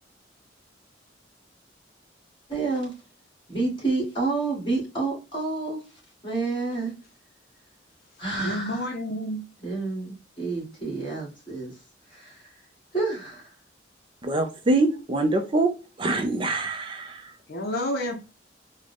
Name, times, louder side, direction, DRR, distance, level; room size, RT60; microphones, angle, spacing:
voice 1, 2.5-2.9 3.5-5.8 6.2-6.9 8.2-8.8 9.6-11.7 12.1-12.4 12.9-13.5, right 3 dB, 30° left, 1.7 m, -29 dB
voice 2, 8.4-9.4 17.5-18.2, left 1 dB, 55° left, 0.7 m, -29 dB
voice 3, 14.2-15.7 16.0-17.3, right 2 dB, 30° right, 0.4 m, -24 dB
3.7 x 2.1 x 3.3 m
head